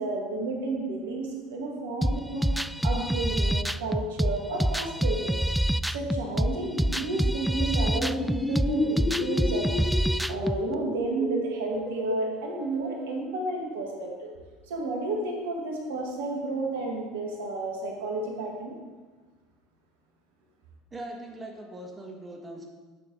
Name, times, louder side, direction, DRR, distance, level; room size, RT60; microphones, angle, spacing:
voice 1, 0.0-2.5 2.8-5.4 5.9-14.3 14.7-18.7, right 2 dB, 75° right, 0 dB, 2.0 m, -32 dB
sound 1, 2.0-10.6, equal, ahead, 0.3 m, -26 dB
sound 2, 7.8-13.2, left 3 dB, 25° left, 1.3 m, -32 dB
voice 2, 20.9-22.7, right 1 dB, 25° right, 1 dB, 1.7 m, -40 dB
11.0 x 6.5 x 4.0 m, 1.4 s
hypercardioid pair, 70°, 0 cm